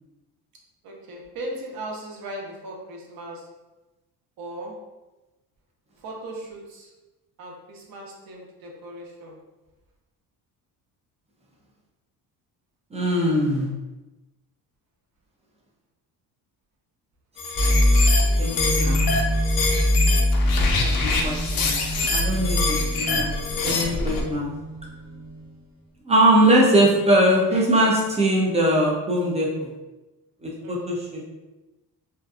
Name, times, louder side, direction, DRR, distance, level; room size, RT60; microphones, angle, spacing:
voice 1, 0.8-3.5 4.4-4.7 6.0-6.9 7.4-9.4 30.6-31.0, right 1 dB, 55° right, -1 dB, 0.7 m, -38 dB
voice 2, 12.9-13.7 18.4-19.1 20.7-21.4 21.6-21.8 22.0-23.3 23.6-24.5 26.1-29.7 30.4-31.2, right 1 dB, 20° right, -3 dB, 0.3 m, -21 dB
sound 1, 17.4-24.2, left 3 dB, 60° left, 0.5 m, -26 dB
sound 2, 17.5-25.5, left 1 dB, 15° left, 0.6 m, -23 dB
2.7 x 2.4 x 2.3 m, 1.1 s
cardioid pair, 140°, 41 cm